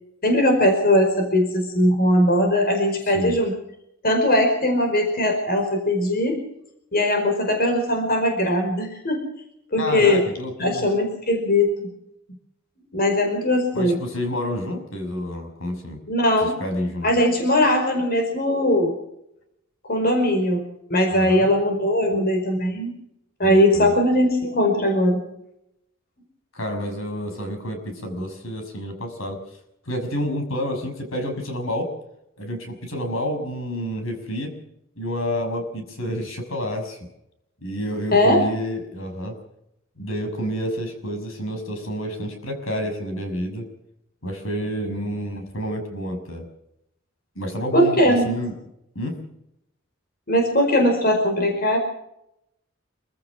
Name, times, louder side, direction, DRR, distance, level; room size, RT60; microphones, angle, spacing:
voice 1, 0.2-3.5 4.0-6.4 6.9-9.2 9.7-10.2 10.6-11.9 12.9-14.0 16.1-16.6 17.0-18.9 19.9-20.6 20.9-22.9 23.4-25.2 38.1-38.5 47.7-48.3 50.3-51.8, left 1 dB, 50° left, 4 dB, 5.0 m, -20 dB
voice 2, 3.1-3.4 9.8-10.9 13.7-16.0 16.4-17.1 21.1-21.5 23.4-23.9 26.5-29.4 29.8-31.9 32.4-34.5 35.0-37.1 37.6-39.4 40.0-43.7 44.2-46.5 47.3-48.5 48.9-49.2, equal, 75° left, 5 dB, 6.2 m, -29 dB
27.0 x 16.0 x 6.3 m, 0.80 s
head